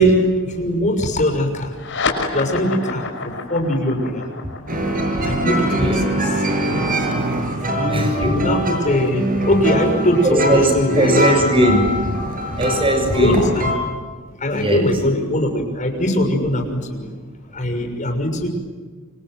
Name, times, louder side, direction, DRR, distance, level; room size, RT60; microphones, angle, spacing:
voice 1, 0.0-1.8 2.3-4.3 5.2-6.2 6.4-6.8 7.8-11.3 13.2-13.7 14.4-17.1 17.5-18.5, equal, 35° left, 4 dB, 6.4 m, -21 dB
sound 1, 1.7-8.6, left 4 dB, 60° left, 6.1 m, -30 dB
sound 2, 4.7-13.7, right 1 dB, 40° right, 6.9 m, -23 dB
voice 2, 5.8-6.1 7.9-8.4 8.8-8.9 10.2-12.2 12.6-13.5 14.5-15.0, equal, 25° right, 5 dB, 7.2 m, -19 dB
29.0 x 26.0 x 7.8 m, 1.5 s
head